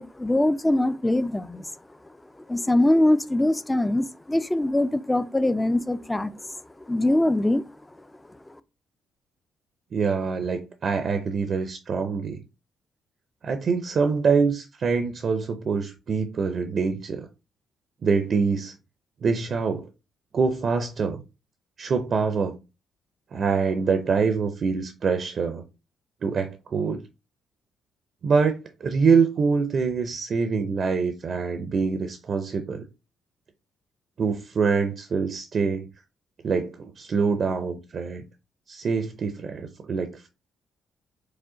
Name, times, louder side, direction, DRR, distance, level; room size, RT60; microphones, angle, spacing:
voice 1, 0.0-1.7 2.5-6.5 6.9-7.6, left 1 dB, 10° left, 0.4 m, -23 dB
voice 2, 9.9-12.4 13.4-17.3 18.0-18.7 19.2-19.9 20.3-21.2 21.8-22.6 23.3-25.6 26.2-27.0 28.2-32.9 34.2-35.9 36.4-38.2 38.7-40.3, right 5 dB, 50° right, 0.6 m, -25 dB
4.9 x 2.1 x 3.8 m
cardioid pair, 90°, 0 cm